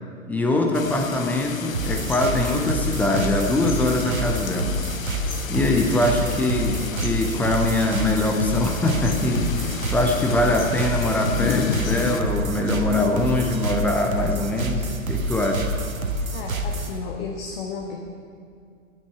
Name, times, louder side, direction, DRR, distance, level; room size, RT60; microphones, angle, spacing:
voice 1, 0.3-4.7 5.5-15.7, left 2 dB, 5° left, 2 dB, 0.4 m, -23 dB
sound 1, 0.7-12.2, left 7 dB, 80° left, 0.7 m, -32 dB
sound 2, 1.7-17.0, right 1 dB, 85° right, 1.3 m, -28 dB
voice 2, 16.3-18.0, left 5 dB, 50° left, 1 dB, 1.3 m, -33 dB
8.9 x 8.6 x 8.4 m, 2.3 s
figure-of-eight pair, 110°, 40 cm